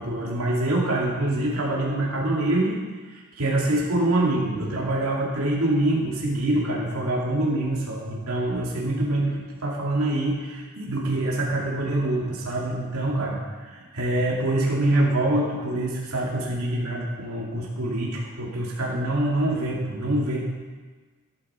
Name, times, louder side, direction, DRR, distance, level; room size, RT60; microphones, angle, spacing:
voice 1, 0.0-2.8 3.1-20.4, right 1 dB, 80° right, -4 dB, 2.7 m, -25 dB
13.0 x 11.5 x 4.5 m, 1.4 s
head